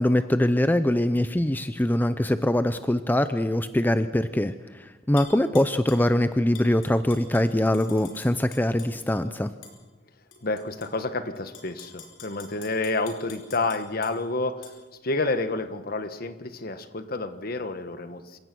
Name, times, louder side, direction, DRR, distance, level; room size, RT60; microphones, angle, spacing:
voice 1, 0.0-9.5, left 1 dB, 10° left, 11 dB, 0.5 m, -23 dB
Tap / Glass, 5.2-6.1 6.5-9.2 9.6-9.8 10.3-10.9 11.4-14.1 14.6-14.7, left 5 dB, 85° left, 4.8 m, -46 dB
voice 2, 10.4-14.7 15.0-18.4, left 2 dB, 50° left, 10 dB, 1.3 m, -29 dB
27.5 x 16.5 x 6.1 m, 1.2 s
head